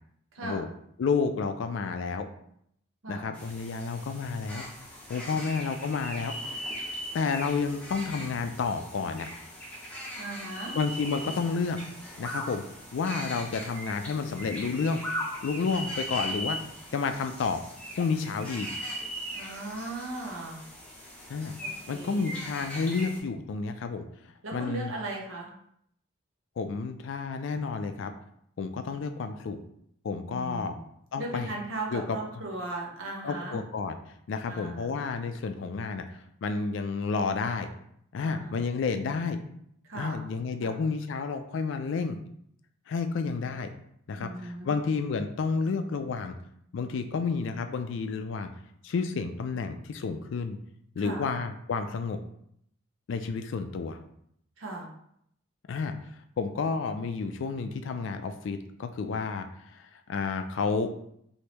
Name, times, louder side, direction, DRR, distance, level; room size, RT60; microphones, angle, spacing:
voice 1, 0.3-0.6 3.0-3.3 5.3-5.5 10.1-10.8 19.3-20.6 21.6-22.3 24.4-25.5 30.3-30.8 31.2-33.6 34.5-34.9 38.2-38.6 39.8-40.3 40.6-40.9 44.1-44.8 51.0-51.3 54.6-54.9, right 2 dB, 80° right, 0 dB, 0.8 m, -38 dB
voice 2, 1.0-2.3 3.1-4.6 5.1-6.3 7.1-9.3 10.7-11.8 12.2-12.6 12.9-15.0 15.4-16.6 16.9-17.6 18.0-18.7 21.3-21.5 21.9-24.0 24.5-24.9 26.6-28.1 28.6-29.6 30.0-30.7 31.1-31.5 31.9-32.2 33.2-34.0 34.3-37.7 38.1-39.4 39.9-42.2 42.9-43.7 44.1-46.3 46.7-48.5 48.8-50.6 51.0-52.2 53.1-54.0 55.7-55.9 56.4-60.9, left 4 dB, 65° left, 8 dB, 0.3 m, -30 dB
sound 1, 3.3-23.2, equal, 5° left, 0.6 m, -39 dB
3.3 x 2.7 x 2.9 m, 0.72 s
head